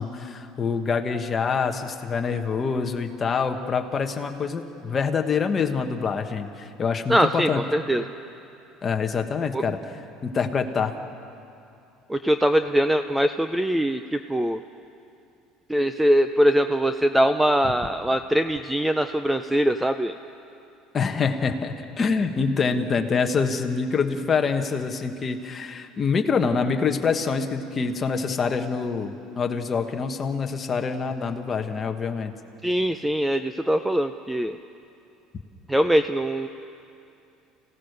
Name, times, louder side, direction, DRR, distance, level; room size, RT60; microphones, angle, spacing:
voice 1, 0.0-7.6 8.8-9.8 10.2-10.9 20.9-32.3, left 5 dB, 20° left, 5 dB, 1.3 m, -25 dB
voice 2, 7.1-8.0 9.5-9.6 12.1-14.6 15.7-20.2 32.6-34.6 35.7-36.5, equal, 5° right, 9 dB, 0.4 m, -22 dB
29.5 x 17.0 x 6.7 m, 2.7 s
cardioid pair, 165°, 0 cm